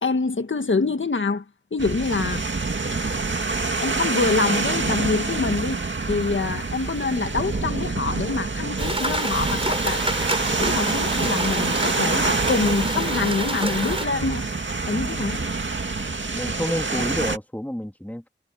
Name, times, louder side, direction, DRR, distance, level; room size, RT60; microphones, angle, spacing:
voice 1, 0.0-1.4 1.7-2.4 3.8-10.1 10.5-14.5 14.9-15.5, left 3 dB, 85° left, 1.5 m, -25 dB
sound 1, 1.8-17.4, right 3 dB, 75° right, 2.2 m, -26 dB
sound 2, 8.8-14.1, right 1 dB, 30° right, 5.3 m, -28 dB
voice 2, 16.3-18.3, left 1 dB, 10° left, 3.0 m, -29 dB
wide cardioid pair, 40°, 19 cm